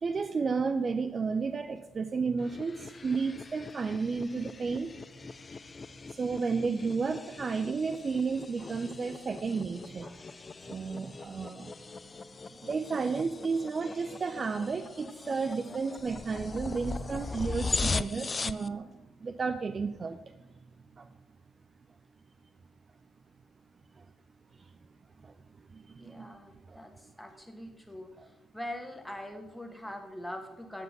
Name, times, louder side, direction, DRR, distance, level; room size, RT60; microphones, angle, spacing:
voice 1, 0.0-4.9 6.1-10.2 10.7-11.7 12.6-20.3 21.0-21.1 24.0-24.1 25.2-25.3 25.7-26.4 26.7-26.8 28.2-28.3, right 4 dB, 40° right, 10 dB, 0.4 m, -32 dB
sound 1, 2.4-18.7, left 4 dB, 35° left, 0.3 m, -39 dB
voice 2, 26.0-26.9 27.2-28.1 28.5-30.8, left 1 dB, 5° left, 4 dB, 1.6 m, -42 dB
7.7 x 5.6 x 5.4 m, 0.98 s
figure-of-eight pair, 40°, 0 cm